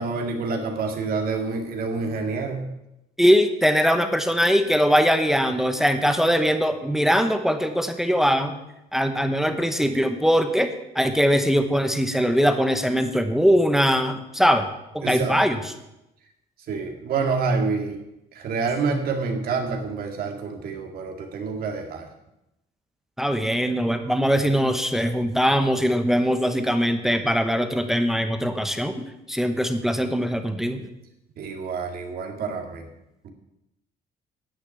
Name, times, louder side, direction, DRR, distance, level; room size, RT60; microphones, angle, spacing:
voice 1, 0.0-2.6 15.0-15.4 16.7-18.0 18.3-22.1 31.4-32.9 33.2-33.3, right 4 dB, 60° right, 2 dB, 2.2 m, -27 dB
voice 2, 3.2-8.6 8.9-10.7 10.9-14.7 14.9-15.6 23.2-28.9 29.3-30.8, equal, ahead, 7 dB, 1.0 m, -21 dB
10.0 x 6.0 x 8.6 m, 0.89 s
cardioid pair, 110°, 17 cm